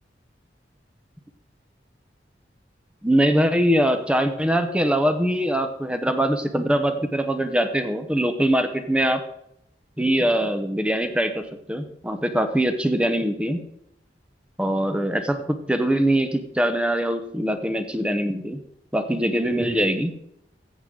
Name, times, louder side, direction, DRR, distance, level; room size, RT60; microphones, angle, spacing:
voice 1, 3.0-9.2 10.0-13.6 14.6-18.6 18.9-20.1, right 1 dB, 5° right, 8 dB, 0.7 m, -22 dB
14.5 x 7.9 x 3.8 m, 0.77 s
head